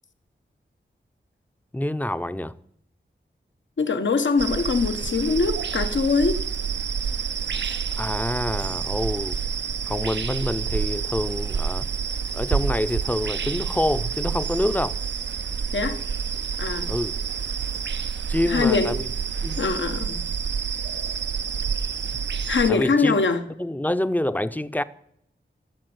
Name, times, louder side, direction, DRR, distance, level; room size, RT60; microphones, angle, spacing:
voice 1, 1.7-2.5 7.9-9.4 9.9-11.9 12.3-15.0 16.8-17.2 18.3-19.1 19.4-19.7 22.7-23.2 23.5-24.8, left 1 dB, 10° left, 0.6 m, -27 dB
voice 2, 3.8-6.4 15.7-16.0 16.6-16.9 18.4-19.0 19.6-20.2 22.5-23.4, left 4 dB, 80° left, 1.2 m, -22 dB
sound 1, 4.4-22.7, right 6 dB, 70° right, 0.5 m, -28 dB
14.0 x 7.2 x 7.8 m
wide cardioid pair, 70°, 19 cm